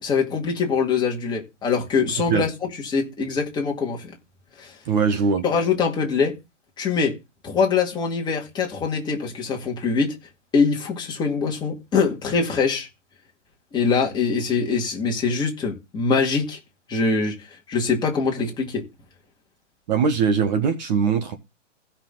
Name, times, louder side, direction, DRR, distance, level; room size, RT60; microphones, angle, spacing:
voice 1, 0.0-4.2 4.6-4.7 5.4-6.4 6.8-7.1 7.4-10.1 10.5-12.9 13.7-16.6 16.9-18.8, left 5 dB, 10° left, 2.2 m, -23 dB
voice 2, 4.9-5.4 19.9-21.4, right 6 dB, 35° right, 1.2 m, -21 dB
16.0 x 5.8 x 3.9 m
hypercardioid pair, 150°, 38 cm